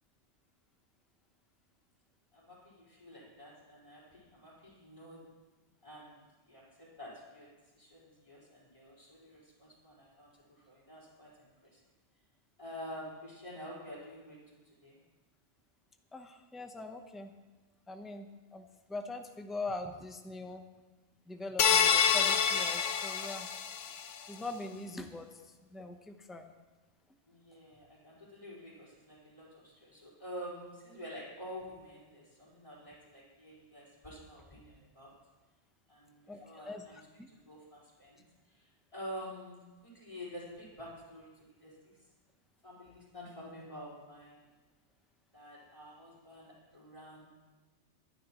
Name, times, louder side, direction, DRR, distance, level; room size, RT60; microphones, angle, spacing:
voice 1, 2.3-5.2 5.8-7.5 7.7-11.8 12.6-15.0 27.3-35.1 35.9-37.0 37.3-38.2 38.5-41.9 42.6-44.4 45.3-47.3, equal, 25° left, -7 dB, 4.8 m, -48 dB
voice 2, 16.1-17.3 17.9-20.6 21.3-23.5 24.3-25.4 25.7-26.5 36.3-36.8 37.2-37.3, left 2 dB, ahead, 5 dB, 0.7 m, -42 dB
sound 1, 21.6-24.1, left 7 dB, 80° left, 1.1 m, -27 dB
22.0 x 10.5 x 3.1 m, 1.2 s
omnidirectional pair, 1.2 m